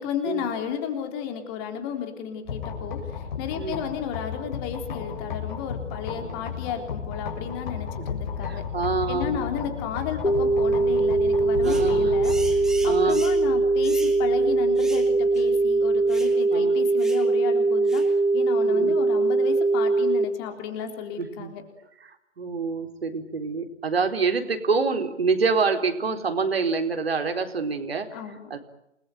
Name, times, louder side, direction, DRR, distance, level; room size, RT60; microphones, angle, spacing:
voice 1, 0.0-3.0 3.4-8.6 9.1-12.3 12.8-18.0 18.3-21.6 28.1-28.5, left 8 dB, 20° left, 6 dB, 3.6 m, -33 dB
sound 1, 2.5-16.3, left 7 dB, 40° left, 6.7 m, -34 dB
voice 2, 8.4-9.5 11.6-12.1 12.8-13.2 16.5-16.8 18.6-18.9 21.2-21.5 22.0-28.1 28.5-28.6, right 4 dB, 55° right, 5 dB, 4.4 m, -26 dB
sound 2, 10.2-20.2, right 3 dB, 70° left, 2.8 m, -21 dB
sound 3, 11.6-11.9 12.2-13.4 13.8-14.2 14.8-15.1 15.3-15.5 16.1-16.4 17.0-17.3 17.9-18.1, right 2 dB, ahead, 2.3 m, -41 dB
29.0 x 20.5 x 9.2 m, 0.83 s
figure-of-eight pair, 135°, 36 cm